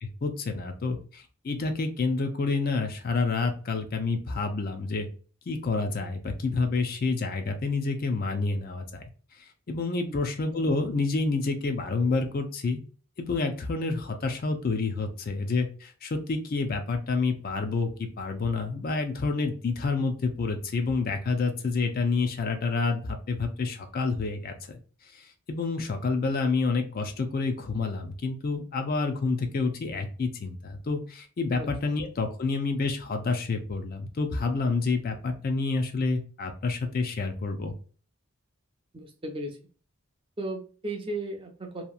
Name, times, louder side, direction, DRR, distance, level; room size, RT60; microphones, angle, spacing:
voice 1, 0.0-5.1 5.5-9.0 9.7-12.8 13.2-24.8 25.1-37.7, left 3 dB, 45° left, 6 dB, 0.4 m, -28 dB
voice 2, 31.6-32.0 38.9-39.6 40.4-41.8, right 1 dB, 25° right, 3 dB, 0.5 m, -35 dB
2.8 x 2.3 x 2.3 m, 0.38 s
head